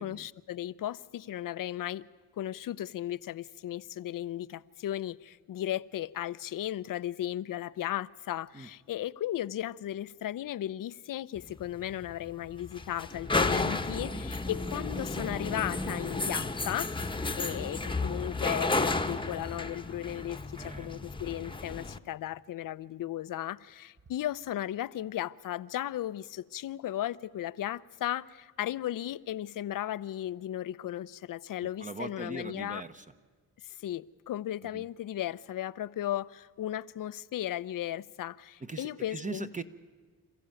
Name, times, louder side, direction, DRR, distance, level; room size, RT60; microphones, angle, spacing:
voice 1, 0.0-2.1 2.4-32.8 33.6-39.5, left 12 dB, 55° left, 0.7 m, -36 dB
sound 1, 11.4-22.0, left 3 dB, 15° left, 1.1 m, -33 dB
voice 2, 14.0-14.3 17.2-17.4 20.6-20.9 31.8-33.1 34.7-34.9 38.6-39.6, right 3 dB, 20° right, 1.0 m, -41 dB
27.5 x 14.5 x 9.0 m
cardioid pair, 75°, 39 cm